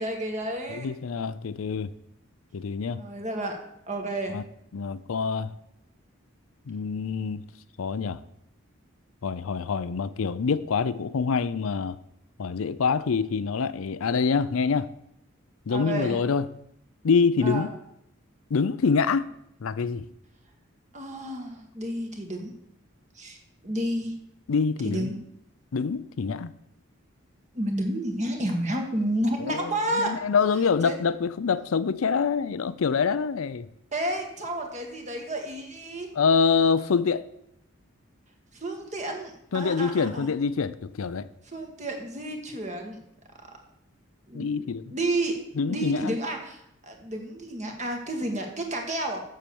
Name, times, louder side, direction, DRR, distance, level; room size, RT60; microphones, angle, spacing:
voice 1, 0.0-0.9 2.9-3.6 3.9-4.4 15.7-16.2 17.4-17.7 20.9-22.5 23.1-23.4 23.6-24.1 24.8-25.2 27.5-30.1 30.8-30.9 33.9-36.1 38.5-40.3 41.4-43.0 44.3-45.4 45.7-49.2, right 1 dB, 35° right, 3 dB, 1.5 m, -31 dB
voice 2, 0.7-1.9 2.5-3.0 4.3-4.4 4.7-5.5 6.7-7.4 7.8-8.2 9.2-12.0 12.4-14.9 15.7-16.5 17.0-17.7 18.5-19.3 19.6-20.1 24.5-25.1 25.7-26.5 29.5-33.7 36.1-37.2 39.5-41.3 44.3-44.9 45.6-46.1, left 5 dB, 85° left, 15 dB, 0.5 m, -25 dB
7.5 x 6.8 x 7.0 m, 0.75 s
head